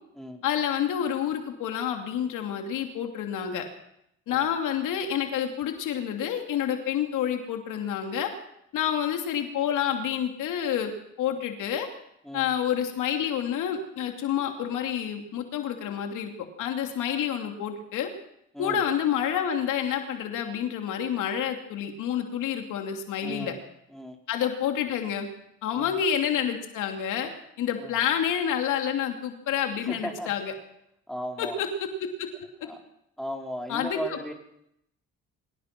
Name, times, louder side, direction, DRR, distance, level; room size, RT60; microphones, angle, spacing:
voice 1, 0.4-3.6 4.3-8.3 8.7-11.9 12.3-16.3 16.6-18.1 18.6-23.5 24.3-25.3 25.6-27.3 27.6-30.5 31.4-31.9 32.2-32.3 33.7-34.3, left 9 dB, 90° left, 4 dB, 2.9 m, -28 dB
voice 2, 23.2-23.6 23.9-24.2 25.7-25.9 27.8-27.9 29.9-30.3 31.1-31.6 32.6-32.8 33.2-34.3, equal, ahead, 1 dB, 4.7 m, -36 dB
24.5 x 17.5 x 6.1 m, 0.75 s
cardioid pair, 90°, 30 cm